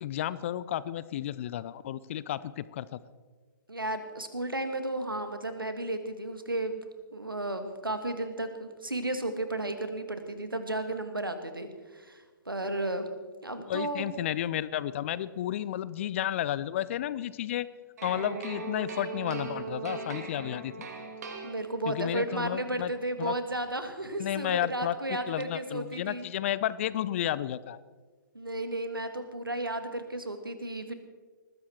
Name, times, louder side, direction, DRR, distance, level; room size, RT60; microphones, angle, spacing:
voice 1, 0.0-3.0 13.6-17.7 18.0-20.7 21.9-22.9 23.2-23.3 24.2-27.8, left 12 dB, 35° left, 18 dB, 0.6 m, -32 dB
voice 2, 3.7-6.8 7.1-13.1 13.4-14.1 21.4-26.3 28.3-30.9, right 1 dB, 80° right, 8 dB, 2.0 m, -33 dB
sound 1, 18.0-22.1, right 4 dB, 50° right, 2.8 m, -39 dB
20.0 x 15.0 x 4.5 m, 1.4 s
figure-of-eight pair, 125°, 11 cm